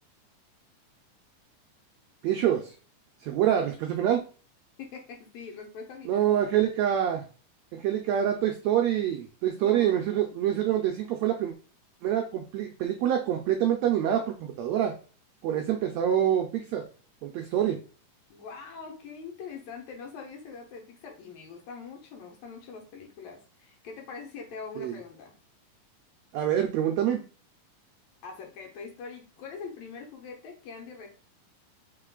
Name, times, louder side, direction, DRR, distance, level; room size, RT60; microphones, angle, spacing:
voice 1, 2.2-2.7 3.2-4.2 6.0-7.2 7.7-11.5 12.0-14.9 15.4-16.8 17.2-17.8 24.8-24.9 26.3-27.2, right 10 dB, 90° right, 3 dB, 1.5 m, -26 dB
voice 2, 4.8-6.3 9.6-10.1 18.3-25.3 28.2-31.1, left 5 dB, 70° left, 2 dB, 2.0 m, -43 dB
5.6 x 3.7 x 2.3 m, 0.37 s
omnidirectional pair, 3.8 m